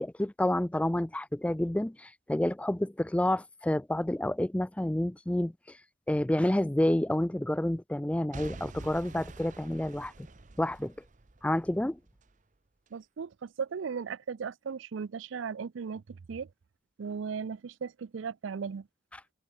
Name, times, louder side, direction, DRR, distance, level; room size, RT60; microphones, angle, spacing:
voice 1, 0.0-5.8 6.1-10.3 10.6-10.9 11.4-12.0, left 1 dB, 5° left, 0.3 m, -29 dB
Boom / Shatter / Crushing, 8.3-12.3 12.9-13.0, right 2 dB, 40° right, 0.8 m, -47 dB
voice 2, 12.9-16.5 17.0-18.9, right 6 dB, 75° right, 0.4 m, -37 dB
head